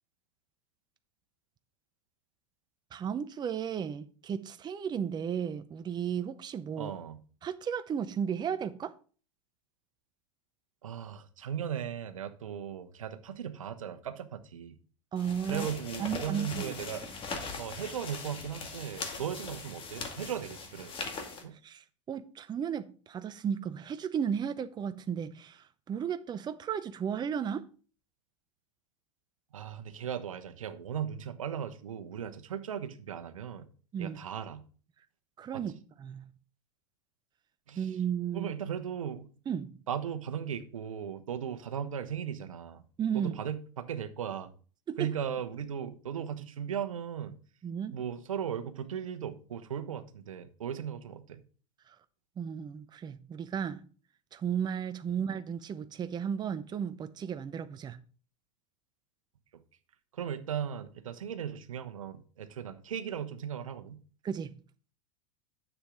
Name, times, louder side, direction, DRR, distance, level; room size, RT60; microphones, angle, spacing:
voice 1, 2.9-6.9 7.4-8.9 15.1-15.7 16.0-16.7 21.5-27.7 33.9-34.2 35.4-35.7 36.0-36.3 37.8-38.5 39.5-39.8 43.0-43.3 44.9-45.1 47.6-48.0 51.9-52.0 52.4-53.8 54.3-58.0 64.2-64.6, right 8 dB, 25° right, 0.7 m, -34 dB
voice 2, 6.8-7.2 10.8-14.8 15.5-17.0 17.6-20.9 21.4-21.6 29.5-33.7 34.0-34.6 35.5-35.6 37.7-37.9 38.3-39.3 39.9-42.8 43.1-44.5 45.0-47.4 47.9-51.4 55.1-55.2 60.1-64.0, right 8 dB, 85° right, 1.1 m, -37 dB
sound 1, 15.2-21.4, left 4 dB, 30° left, 2.5 m, -41 dB
9.9 x 7.4 x 3.8 m
hypercardioid pair, 95°, 17 cm